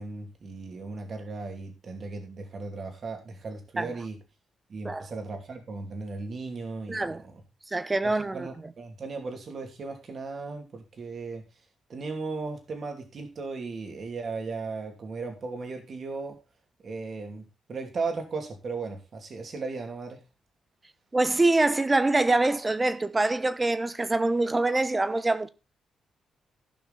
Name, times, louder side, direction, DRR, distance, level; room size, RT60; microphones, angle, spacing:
voice 1, 0.0-4.2 4.7-7.4 8.3-11.4 11.9-16.4 16.8-20.2, right 4 dB, 45° right, 2.8 m, -36 dB
voice 2, 6.9-7.2 7.7-8.5 21.1-25.5, right 2 dB, 20° right, 0.9 m, -24 dB
15.5 x 5.9 x 4.1 m
cardioid pair, 120°, 0 cm